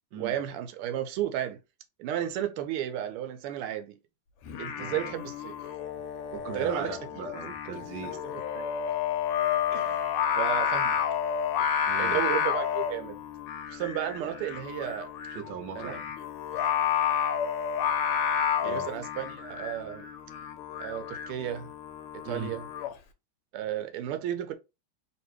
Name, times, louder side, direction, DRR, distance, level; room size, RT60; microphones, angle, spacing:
voice 1, 0.2-1.6 2.0-4.0 4.6-5.5 6.5-6.9 8.0-8.1 8.5-8.7 9.7-11.0 12.0-13.2 13.7-15.1 15.8-16.0 16.5-16.6 18.6-20.1 20.8-21.7 22.2-22.6 23.5-24.5, right 11 dB, 80° right, 1.5 m, -33 dB
Singing, 4.4-22.9, left 8 dB, 85° left, 1.5 m, -30 dB
voice 2, 4.8-5.1 6.3-8.2 11.8-12.3 15.3-16.1 18.6-18.9 22.2-22.5, right 5 dB, 65° right, 1.1 m, -39 dB
3.3 x 3.0 x 3.1 m
omnidirectional pair, 2.4 m